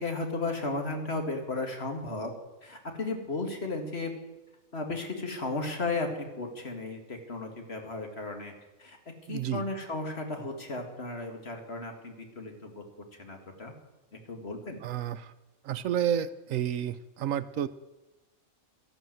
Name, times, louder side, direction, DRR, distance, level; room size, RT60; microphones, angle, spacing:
voice 1, 0.0-2.3 2.6-4.1 4.7-6.1 6.4-8.5 8.8-9.0 9.3-12.8 13.2-13.7 14.3-14.8, left 3 dB, 45° left, 4 dB, 2.3 m, -34 dB
voice 2, 9.3-9.7 14.8-15.3 15.6-17.7, right 10 dB, 75° right, 14 dB, 1.0 m, -30 dB
13.0 x 11.5 x 7.8 m, 1.1 s
omnidirectional pair, 1.5 m